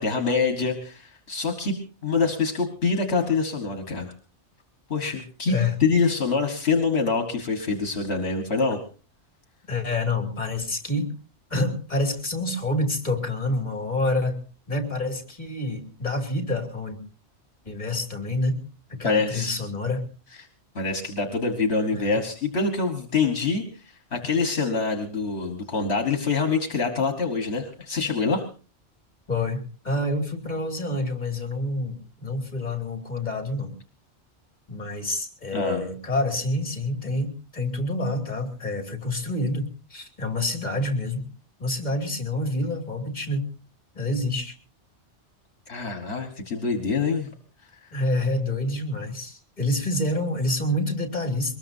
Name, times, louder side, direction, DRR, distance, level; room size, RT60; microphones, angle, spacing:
voice 1, 0.0-1.8 2.0-4.1 4.9-5.5 5.8-8.8 19.0-19.6 20.7-23.8 24.1-28.4 35.5-35.9 45.7-47.3, left 4 dB, 65° left, 5 dB, 1.8 m, -25 dB
voice 2, 9.7-11.1 11.5-14.4 14.7-17.0 17.6-18.6 18.9-20.0 21.9-22.2 29.3-33.7 34.7-41.2 41.6-43.5 43.9-44.6 47.9-51.6, left 2 dB, 40° left, 4 dB, 2.8 m, -27 dB
23.0 x 20.5 x 2.7 m, 0.36 s
omnidirectional pair, 1.2 m